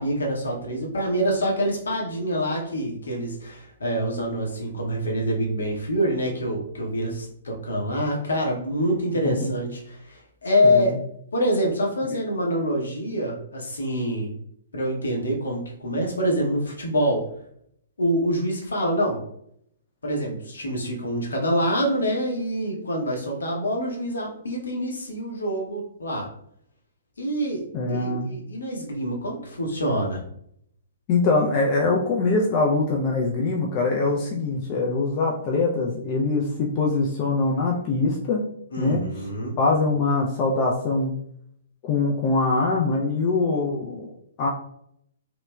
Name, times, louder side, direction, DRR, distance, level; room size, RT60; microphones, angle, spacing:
voice 1, 0.0-11.0 11.3-14.3 14.7-17.2 18.0-19.2 20.0-26.3 27.2-27.6 27.9-30.2 38.7-39.5, equal, 65° left, 0 dB, 0.9 m, -26 dB
voice 2, 10.6-11.0 27.7-28.3 31.1-38.4 38.8-39.0 39.6-41.2 41.8-44.1 44.4-44.5, left 3 dB, 30° left, -1 dB, 0.4 m, -23 dB
3.1 x 2.9 x 2.3 m, 0.70 s
figure-of-eight pair, 120°, 0 cm